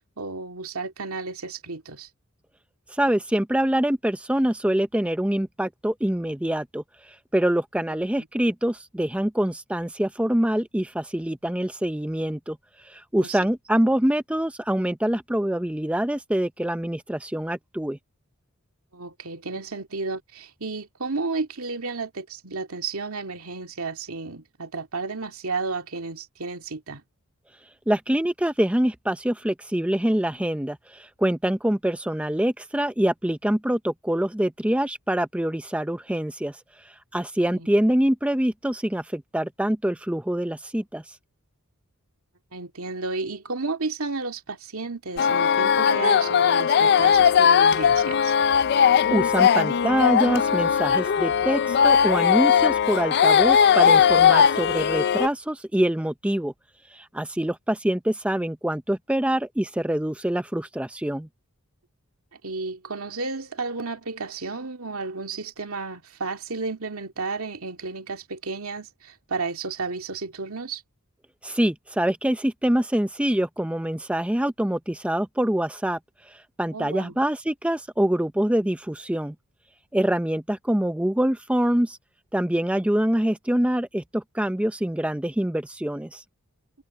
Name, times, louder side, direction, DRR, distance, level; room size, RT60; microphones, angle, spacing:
voice 1, 0.2-2.1 13.2-13.4 18.9-27.0 37.5-37.7 42.5-48.3 62.4-70.8 76.7-77.2, right 3 dB, 75° right, 2.2 m, -32 dB
voice 2, 2.9-12.6 12.8-18.0 27.9-36.6 36.8-41.2 49.1-56.5 56.9-61.3 71.4-76.0 76.3-79.3 79.9-82.0 82.3-86.2, right 1 dB, 5° right, 0.5 m, -25 dB
sound 1, 45.2-55.3, left 7 dB, 50° left, 0.4 m, -19 dB
head